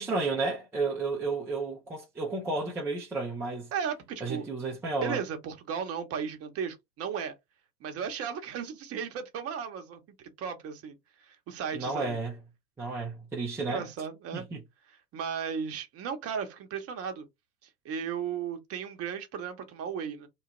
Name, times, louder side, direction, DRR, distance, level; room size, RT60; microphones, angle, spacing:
voice 1, 0.0-3.7 4.2-5.2 11.7-12.3 12.8-13.8 14.3-14.6, right 3 dB, 5° right, 0.4 m, -32 dB
voice 2, 3.7-4.4 5.0-7.3 7.8-12.2 13.6-14.5 14.9-17.3 17.8-20.3, right 7 dB, 30° right, 0.9 m, -35 dB
3.1 x 2.2 x 3.0 m
hypercardioid pair, 95°, 49 cm